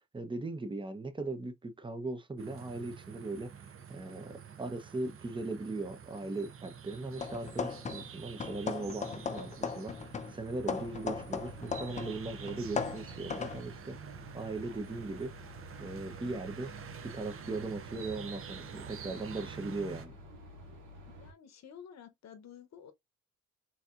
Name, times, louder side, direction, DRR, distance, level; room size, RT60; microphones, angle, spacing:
voice 1, 0.1-3.5 3.9-15.3 15.8-16.7 17.0-20.2, right 2 dB, 15° right, 0.7 m, -39 dB
sound 1, 2.4-20.1, right 7 dB, 45° right, 0.7 m, -48 dB
sound 2, 7.2-8.2 8.4-12.2 12.5-13.6, left 5 dB, 25° left, 0.5 m, -37 dB
sound 3, 10.7-21.3, equal, 70° right, 1.4 m, -51 dB
voice 2, 21.1-22.9, left 8 dB, 65° left, 0.9 m, -51 dB
4.0 x 2.8 x 2.4 m
cardioid pair, 90°, 30 cm